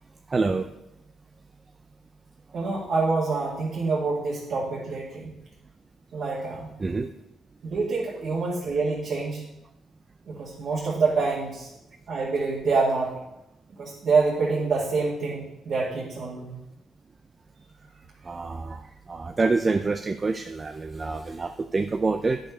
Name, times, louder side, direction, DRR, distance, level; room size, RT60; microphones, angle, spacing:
voice 1, 0.3-0.7 6.8-7.1 18.3-18.8 19.1-22.4, right 3 dB, 30° right, 7 dB, 0.5 m, -26 dB
voice 2, 2.5-5.4 6.1-6.7 7.6-9.4 10.3-11.7 12.1-13.1 13.8-16.6, right 4 dB, 55° right, -5 dB, 2.0 m, -26 dB
9.5 x 5.3 x 5.5 m, 0.88 s
cardioid pair, 90°, 0 cm